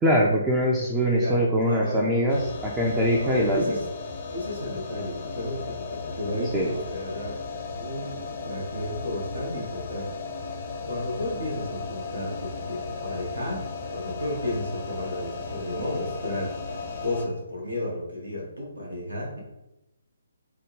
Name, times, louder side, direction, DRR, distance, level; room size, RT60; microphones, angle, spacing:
voice 1, 0.0-3.6 6.5-6.7, equal, 10° right, -2 dB, 0.4 m, -23 dB
voice 2, 1.2-2.1 3.1-3.9 4.3-7.4 7.8-10.1 10.9-13.7 13.9-19.4, left 1 dB, 75° right, -3 dB, 1.1 m, -33 dB
sound 1, 2.3-17.3, left 4 dB, 40° left, 0.6 m, -36 dB
3.6 x 2.2 x 3.1 m, 0.92 s
figure-of-eight pair, 140°, 0 cm